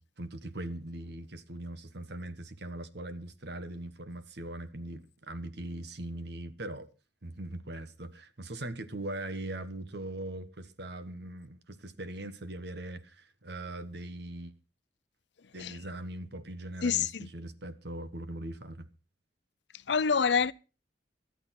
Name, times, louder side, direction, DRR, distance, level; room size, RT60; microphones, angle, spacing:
voice 1, 0.0-6.9 7.2-14.5 15.5-18.9, right 1 dB, 65° right, 1.4 m, -40 dB
voice 2, 16.8-17.3 19.9-20.5, left 6 dB, 70° left, 0.6 m, -26 dB
18.5 x 12.0 x 4.3 m
head